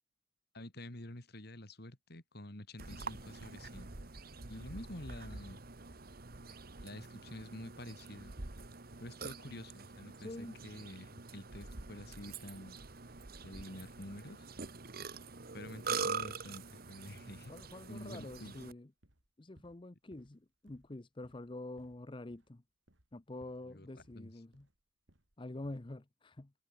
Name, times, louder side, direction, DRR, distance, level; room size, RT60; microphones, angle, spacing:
voice 1, 0.5-3.9 4.4-5.6 6.8-8.3 9.0-12.8 13.4-14.5 15.5-17.5 17.9-18.5 23.7-23.9 24.1-24.3, left 1 dB, 55° left, 3.2 m, -48 dB
Burping eructation, 2.8-18.7, right 5 dB, 50° right, 1.6 m, -45 dB
sound 1, 7.3-8.6 8.9-9.7 10.0-10.9 11.2-11.4 11.7-12.0 12.3-13.7 14.0-14.2 14.6-15.9 16.2-16.5 16.7-17.6 17.9-18.2 18.4-18.7 19.0-19.3 19.5-19.8 20.1-20.4 20.7-20.9 21.2-21.5 21.8-22.5 22.9-23.1 23.4-23.7 24.0-24.2 24.5-24.8 25.1-25.3 25.6-25.9, equal, 75° right, 5.5 m, -65 dB
voice 2, 10.2-10.6 17.5-18.9 19.4-22.6 23.1-24.7 25.4-26.5, left 2 dB, 25° left, 0.7 m, -47 dB
head